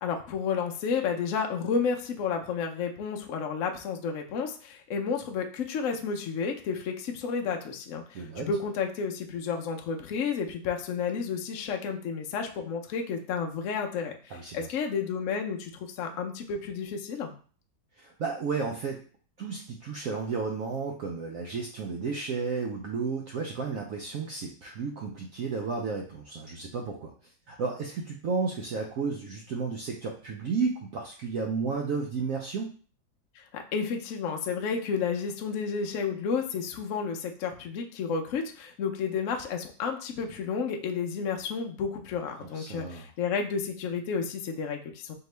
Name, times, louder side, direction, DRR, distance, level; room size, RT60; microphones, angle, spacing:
voice 1, 0.0-17.3 33.4-45.1, left 6 dB, 70° left, 3 dB, 0.7 m, -31 dB
voice 2, 8.1-8.5 14.3-14.7 18.0-19.0 19.4-27.1 27.5-32.7 42.4-43.1, right 4 dB, 80° right, 1 dB, 0.7 m, -32 dB
4.3 x 2.8 x 3.2 m, 0.41 s
omnidirectional pair, 2.1 m